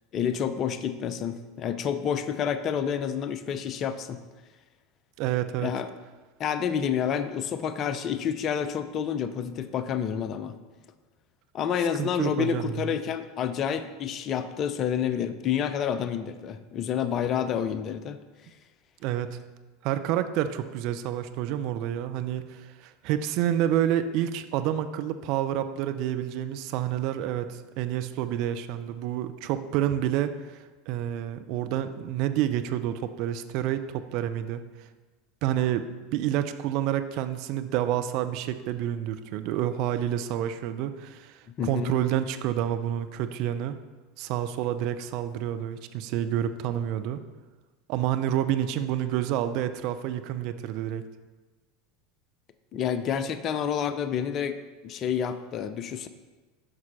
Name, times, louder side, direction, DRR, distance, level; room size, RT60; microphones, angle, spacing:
voice 1, 0.1-4.2 5.6-5.9 6.4-10.6 11.5-18.2 41.6-41.9 52.7-56.1, left 8 dB, 35° left, 11 dB, 0.6 m, -29 dB
voice 2, 5.2-5.8 12.0-13.0 19.0-19.4 19.8-34.6 35.4-43.8 44.2-47.2 47.9-51.1, right 11 dB, 50° right, 9 dB, 0.5 m, -29 dB
10.0 x 6.1 x 4.3 m, 1.3 s
figure-of-eight pair, 80°, 0 cm